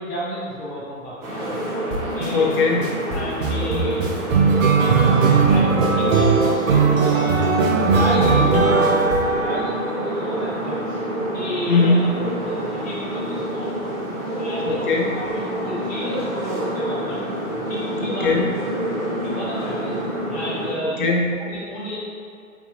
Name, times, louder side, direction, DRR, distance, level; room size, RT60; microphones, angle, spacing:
voice 1, 0.0-1.6 2.1-2.5 3.1-4.3 4.7-8.8 9.3-11.0 11.3-12.1 12.4-13.7 14.3-14.8 15.1-17.3 17.6-18.5 19.2-20.0 20.3-21.0 21.4-22.0, equal, 20° left, -8 dB, 0.9 m, -32 dB
sound 1, 1.2-20.7, right 1 dB, 35° right, 1.1 m, -28 dB
sound 2, 1.9-2.3 2.8-10.0, right 4 dB, 65° right, 0.6 m, -18 dB
voice 2, 2.3-3.0 8.3-8.8 11.7-12.2 14.6-15.2 18.1-18.5 20.8-21.4, left 3 dB, 40° left, 1 dB, 0.5 m, -20 dB
3.4 x 2.4 x 3.7 m, 2.3 s
figure-of-eight pair, 120°, 43 cm